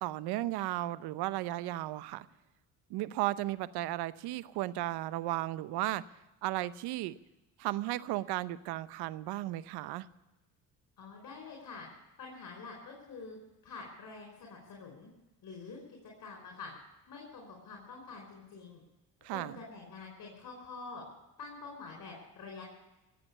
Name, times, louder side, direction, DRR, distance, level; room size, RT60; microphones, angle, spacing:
voice 1, 0.0-2.3 2.9-6.0 6.4-7.2 7.6-10.1 19.2-19.6, right 16 dB, 75° right, 16 dB, 0.8 m, -35 dB
voice 2, 11.0-11.9 12.2-13.4 13.6-15.1 15.4-16.7 17.1-18.8 19.2-21.0 21.4-22.6, left 4 dB, 55° left, 0 dB, 4.8 m, -47 dB
17.5 x 7.9 x 9.7 m, 1.0 s
supercardioid pair, 75°, 40 cm